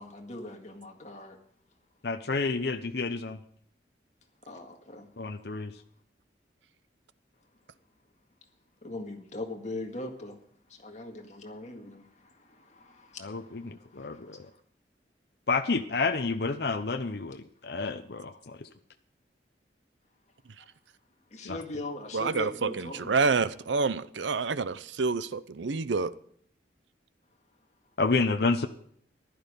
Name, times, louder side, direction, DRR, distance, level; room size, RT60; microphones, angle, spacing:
voice 1, 0.0-1.4 4.5-5.1 8.8-10.4 10.7-14.5 21.3-23.1, left 2 dB, 40° left, 2.0 m, -41 dB
voice 2, 2.0-3.4 5.2-5.7 13.2-14.5 15.5-18.7 21.4-21.6 28.0-28.7, left 3 dB, 60° left, 0.8 m, -29 dB
voice 3, 22.1-26.1, right 4 dB, 85° right, 0.6 m, -28 dB
15.0 x 12.0 x 5.2 m
head